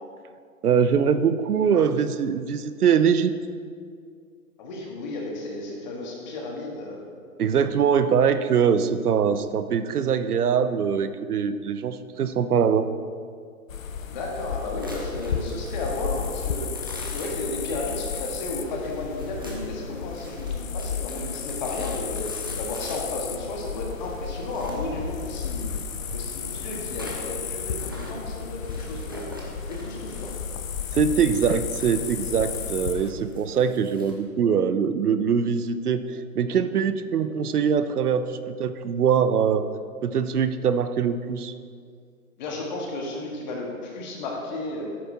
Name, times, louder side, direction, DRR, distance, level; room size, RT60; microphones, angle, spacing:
voice 1, 0.6-3.3 7.4-12.9 30.9-39.7 40.0-41.5, right 7 dB, 85° right, 11 dB, 0.7 m, -23 dB
voice 2, 4.6-7.0 14.1-16.7 17.1-22.2 22.6-25.7 26.1-29.3 29.7-30.3 42.4-44.8, left 2 dB, 30° left, -1 dB, 1.5 m, -33 dB
sound 1, 13.7-33.1, left 6 dB, 60° left, 0.7 m, -33 dB
sound 2, 14.8-34.1, equal, 15° right, 0.4 m, -44 dB
10.5 x 8.7 x 2.8 m, 2.2 s
hypercardioid pair, 150°, 44 cm